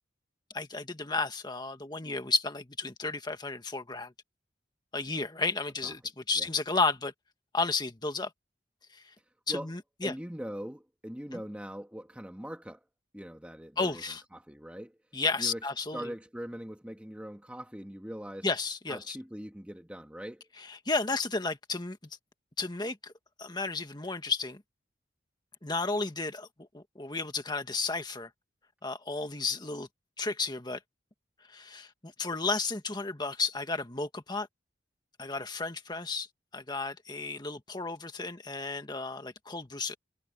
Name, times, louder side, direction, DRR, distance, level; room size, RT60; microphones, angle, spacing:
voice 1, 0.5-4.1 4.9-7.1 7.5-8.3 8.9-9.0 9.5-10.1 11.3-11.4 13.8-14.2 15.1-16.1 18.4-19.2 20.7-22.0 22.6-23.1 23.4-24.6 25.6-26.5 26.7-28.3 28.8-29.9 30.2-30.8 31.5-34.5 35.2-36.3 36.5-40.0, left 3 dB, 25° left, 1.7 m, -32 dB
voice 2, 10.0-12.8 13.1-14.0 14.3-15.0 15.4-18.5 18.9-20.5, equal, 5° right, 1.5 m, -41 dB
head